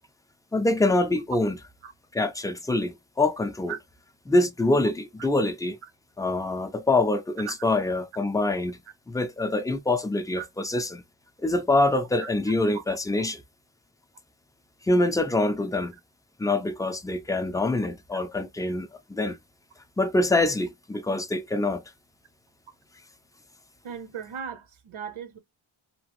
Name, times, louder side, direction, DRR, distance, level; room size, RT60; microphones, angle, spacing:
voice 1, 0.5-1.6 2.1-3.7 4.3-5.8 6.2-8.8 9.1-11.0 11.4-13.4 14.8-16.0 16.4-19.4 20.0-21.8, left 2 dB, 10° left, 0.4 m, -25 dB
voice 2, 23.8-25.4, right 8 dB, 80° right, 0.8 m, -37 dB
2.9 x 2.4 x 2.9 m
cardioid pair, 70°, 49 cm